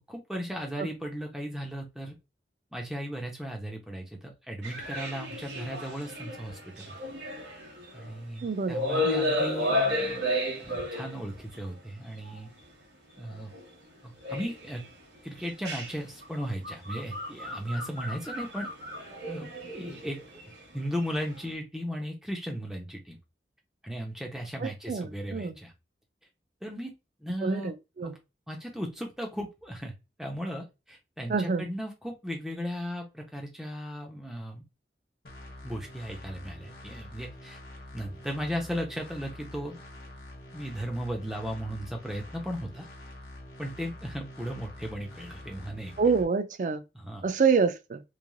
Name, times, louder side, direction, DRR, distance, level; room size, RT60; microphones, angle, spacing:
voice 1, 0.1-2.2 2.7-7.0 7.9-10.3 10.6-12.5 13.2-13.5 14.0-14.8 15.2-18.7 19.3-20.2 20.7-23.2 23.8-25.7 26.6-26.9 27.2-27.7 28.0-28.2 28.5-34.6 35.6-37.6 37.9-39.8 40.5-42.9 43.6-45.9 46.9-47.3, equal, 5° right, 0.6 m, -36 dB
sound 1, 4.6-8.4 8.7-11.6 12.2-12.4 13.3-13.6 14.2-14.9 15.4-21.4, left 1 dB, 90° right, 1.2 m, -33 dB
voice 2, 8.4-8.8 24.6-25.6 27.4-28.1 31.3-31.7 46.0-46.8 47.2-48.0, right 5 dB, 45° right, 0.3 m, -27 dB
sound 2, 35.2-46.2, left 1 dB, 55° left, 0.9 m, -46 dB
3.1 x 2.5 x 2.2 m
head